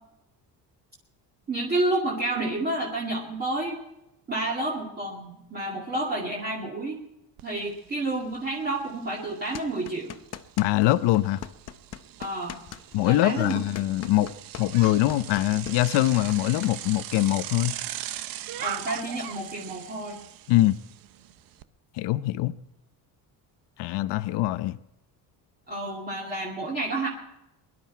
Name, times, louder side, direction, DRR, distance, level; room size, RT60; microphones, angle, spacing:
voice 1, 1.5-3.8 4.3-7.0 7.4-10.1 12.2-12.6 13.0-13.6 18.6-20.2 25.7-27.1, right 2 dB, 25° right, 2.4 m, -30 dB
Bicycle, 7.4-7.5 7.9-21.6, right 12 dB, 55° right, 0.8 m, -40 dB
sound 1, 9.5-10.9 11.1-16.7, left 10 dB, 40° left, 0.7 m, -40 dB
voice 2, 10.6-11.4 12.9-14.3 14.6-17.7 20.5-20.8 22.0-22.5 23.8-24.8, left 15 dB, 85° left, 0.8 m, -23 dB
23.0 x 11.5 x 4.5 m
cardioid pair, 165°, 40 cm